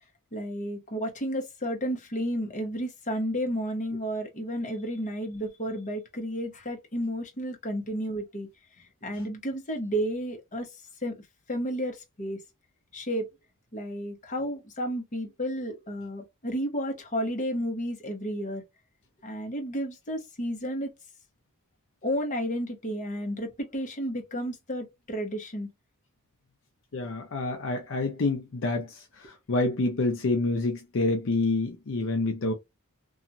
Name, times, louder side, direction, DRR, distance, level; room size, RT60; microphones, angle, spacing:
voice 1, 0.3-8.5 9.0-10.7 11.0-11.1 11.5-12.4 12.9-13.3 13.7-18.6 19.2-20.9 22.0-25.7, equal, 35° left, 0.9 m, -32 dB
voice 2, 26.9-32.5, left 2 dB, 60° left, 0.5 m, -28 dB
2.9 x 2.3 x 2.5 m
head